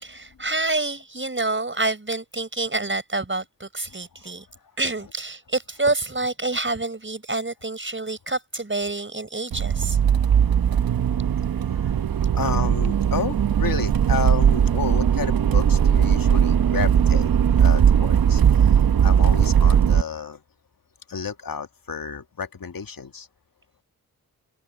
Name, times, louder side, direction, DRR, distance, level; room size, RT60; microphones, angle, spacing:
voice 1, 0.0-4.5 4.8-10.0, right 2 dB, 30° right, 5.8 m, -27 dB
voice 2, 3.9-4.6 10.1-10.6 11.7-12.0 12.3-17.3 17.6-18.8 19.0-20.4 21.1-23.3, left 6 dB, 65° left, 1.8 m, -32 dB
Accelerating revving vroom, 9.5-20.0, right 8 dB, 70° right, 0.8 m, -19 dB
cardioid pair, 45°, 37 cm